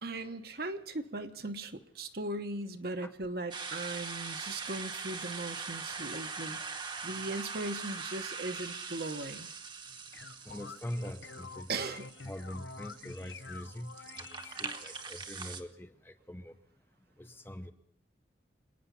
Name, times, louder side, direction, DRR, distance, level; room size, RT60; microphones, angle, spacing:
voice 1, 0.0-6.6 7.0-9.5 11.7-12.1, right 2 dB, 55° right, 7 dB, 1.1 m, -38 dB
sound 1, 3.5-15.6, right 5 dB, 25° right, 1.0 m, -42 dB
sound 2, 9.9-15.1, left 4 dB, 80° left, 0.7 m, -48 dB
voice 2, 10.5-11.8 12.2-16.5 17.2-17.7, left 1 dB, 10° left, 8 dB, 0.7 m, -43 dB
26.5 x 9.5 x 5.6 m, 0.69 s
head